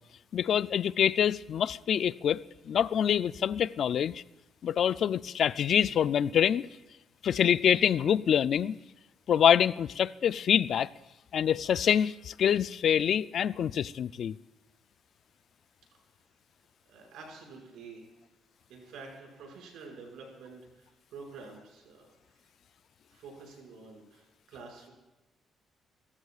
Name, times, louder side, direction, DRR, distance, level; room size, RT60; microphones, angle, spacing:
voice 1, 0.3-4.2 4.6-6.7 7.2-8.8 9.3-10.9 11.3-14.4, left 9 dB, 65° left, 0.4 m, -26 dB
voice 2, 16.9-18.1 18.7-22.1 23.1-24.9, right 4 dB, 85° right, 5.8 m, -48 dB
26.5 x 14.5 x 2.4 m
cardioid pair, 90°, 0 cm